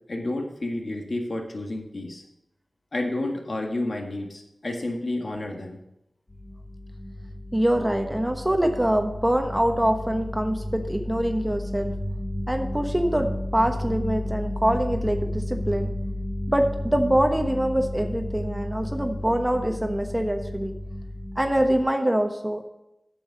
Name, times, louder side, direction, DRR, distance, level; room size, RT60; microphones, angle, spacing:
voice 1, 0.1-2.2 2.9-5.8, left 2 dB, 70° left, 2 dB, 1.7 m, -30 dB
sound 1, 6.3-21.8, left 1 dB, 35° left, 2.0 m, -32 dB
voice 2, 7.5-12.0 12.5-15.9 16.5-20.8 21.4-22.7, right 1 dB, 15° right, 4 dB, 1.1 m, -24 dB
9.0 x 7.1 x 5.3 m, 0.86 s
wide cardioid pair, 60°, 0 cm